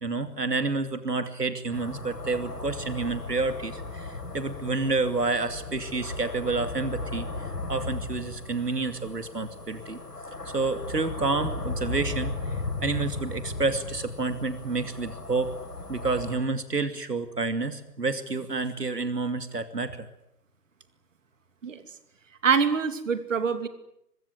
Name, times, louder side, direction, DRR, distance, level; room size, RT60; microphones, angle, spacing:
voice 1, 0.0-10.0 10.5-15.5 15.9-20.1, right 3 dB, 80° right, 10 dB, 2.6 m, -29 dB
sound 1, 1.7-16.4, left 3 dB, 75° left, 6.7 m, -36 dB
voice 2, 22.4-23.7, right 6 dB, 50° right, 10 dB, 3.0 m, -24 dB
25.0 x 22.0 x 9.7 m, 0.81 s
figure-of-eight pair, 145°, 47 cm